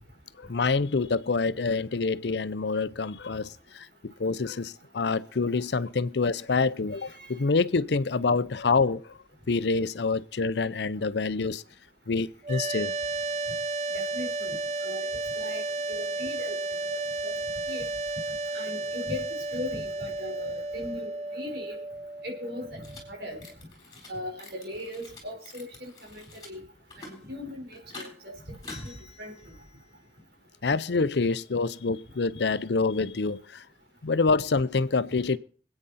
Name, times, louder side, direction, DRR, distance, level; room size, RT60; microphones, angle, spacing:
voice 1, 0.4-9.0 9.5-11.6 12.1-12.9 30.6-33.6 34.0-35.4, left 4 dB, 80° left, 0.6 m, -26 dB
sound 1, 12.4-23.5, right 2 dB, 40° right, 0.6 m, -33 dB
voice 2, 13.9-14.5 14.8-15.1 15.4-15.6 15.9-16.6 16.8-17.3 17.7-17.8 18.5-19.2 19.5-21.8 22.2-23.4 24.1-26.6 27.0-28.3 28.6-29.3, left 1 dB, 70° right, 4.4 m, -38 dB
sound 2, 22.8-23.0 23.3-24.1 24.4-26.5 26.8-27.3 27.7-28.1 28.5-30.0, left 3 dB, 20° left, 4.0 m, -47 dB
25.5 x 8.9 x 4.2 m
head